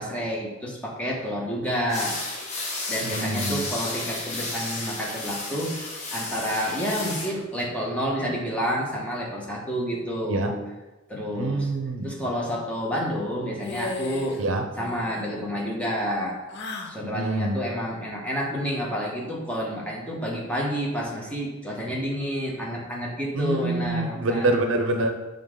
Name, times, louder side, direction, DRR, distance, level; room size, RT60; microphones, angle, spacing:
voice 1, 0.0-2.2 2.9-5.7 6.1-10.6 11.1-11.7 12.0-14.4 14.8-16.4 16.9-24.5, equal, 5° left, -4 dB, 1.3 m, -29 dB
sound 1, 1.9-7.3, left 2 dB, 35° left, 1.1 m, -33 dB
voice 2, 3.0-3.7 10.3-10.5 11.3-12.3 14.4-14.6 17.0-17.6 23.3-25.1, right 2 dB, 70° right, 4 dB, 0.6 m, -26 dB
sound 2, 13.6-14.4 14.7-15.3 16.5-17.0, left 3 dB, 55° left, 0.6 m, -35 dB
7.1 x 3.8 x 3.7 m, 1.1 s
head